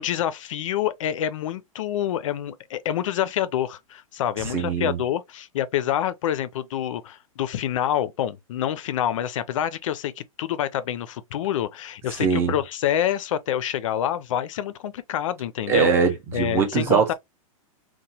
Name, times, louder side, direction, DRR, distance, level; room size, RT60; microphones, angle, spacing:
voice 1, 0.0-15.9 16.3-17.1, left 11 dB, 60° left, 0.4 m, -27 dB
voice 2, 4.4-5.0 12.2-12.6 15.7-17.1, right 6 dB, 15° right, 0.5 m, -22 dB
3.0 x 2.1 x 2.7 m
hypercardioid pair, 160°, 18 cm